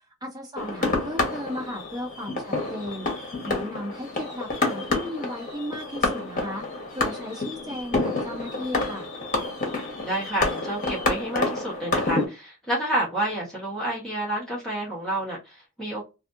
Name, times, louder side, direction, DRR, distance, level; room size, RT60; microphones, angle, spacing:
voice 1, 0.2-9.1, left 1 dB, 20° right, -2 dB, 1.2 m, -36 dB
sound 1, 0.6-12.3, left 2 dB, 40° left, 1.1 m, -28 dB
voice 2, 10.0-16.0, right 1 dB, 5° left, -8 dB, 1.2 m, -29 dB
3.4 x 2.5 x 2.6 m, 0.27 s
head